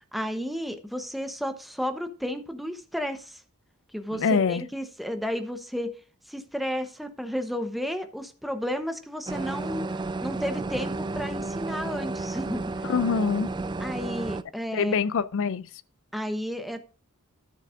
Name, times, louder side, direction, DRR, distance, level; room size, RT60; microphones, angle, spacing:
voice 1, 0.1-3.4 3.9-5.9 6.3-9.9 10.2-12.7 13.8-14.9 16.1-16.9, equal, ahead, 0.9 m, -32 dB
voice 2, 4.1-4.6 12.8-13.5 14.7-15.7, left 5 dB, 60° left, 0.4 m, -24 dB
sound 1, 9.3-14.4, right 3 dB, 20° right, 0.3 m, -32 dB
13.5 x 6.6 x 2.5 m
head